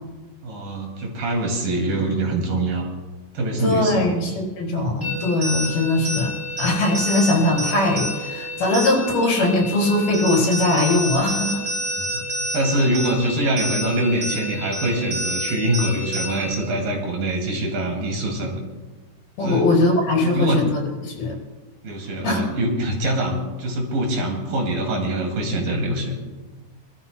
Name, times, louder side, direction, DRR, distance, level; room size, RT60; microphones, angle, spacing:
voice 1, 0.4-2.9 3.3-4.2 12.0-18.6 19.4-19.7 20.2-20.6 21.8-26.2, right 1 dB, 65° right, 0 dB, 3.8 m, -24 dB
voice 2, 3.6-6.3 6.6-11.6 19.4-20.7 21.0-21.4 22.2-22.4, left 2 dB, 80° left, -2 dB, 6.0 m, -20 dB
sound 1, 5.0-16.6, equal, 20° right, 3.2 m, -29 dB
25.5 x 13.5 x 2.2 m, 1.2 s
omnidirectional pair, 4.3 m